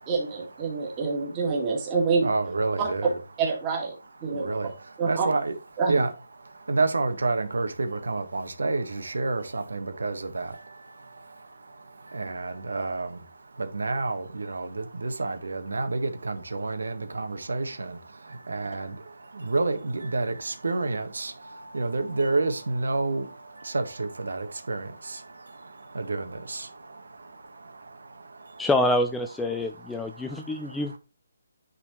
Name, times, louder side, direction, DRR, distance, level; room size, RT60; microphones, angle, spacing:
voice 1, 0.1-2.3 2.8-2.9 3.4-3.9 4.2-4.5 5.0-5.3 5.8-6.0, right 4 dB, 15° right, 2.3 m, -26 dB
voice 2, 0.6-1.7 2.2-3.2 4.2-5.6 5.9-28.7 29.5-31.0, right 3 dB, 90° right, 1.6 m, -30 dB
voice 3, 28.6-31.0, left 1 dB, 5° left, 0.4 m, -26 dB
9.8 x 4.3 x 4.4 m
hypercardioid pair, 170°, 0 cm